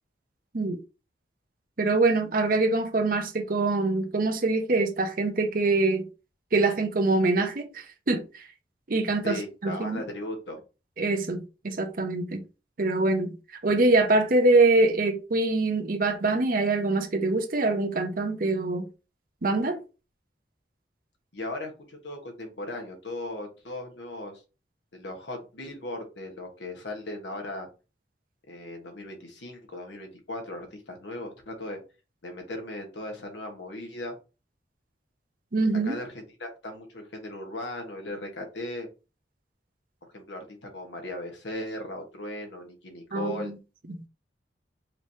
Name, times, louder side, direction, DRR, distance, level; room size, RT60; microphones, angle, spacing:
voice 1, 1.8-6.1 6.5-8.4 8.9-10.0 11.0-12.4 12.8-13.4 13.6-18.9 19.4-19.8 35.5-36.0 43.1-43.6 43.9-44.0, right 2 dB, 50° right, 0.8 m, -24 dB
voice 2, 9.2-10.6 21.3-24.4 24.9-27.7 28.5-31.8 32.2-34.1 35.8-38.9 40.1-43.5, left 1 dB, 85° left, 1.3 m, -37 dB
5.0 x 3.2 x 2.8 m
head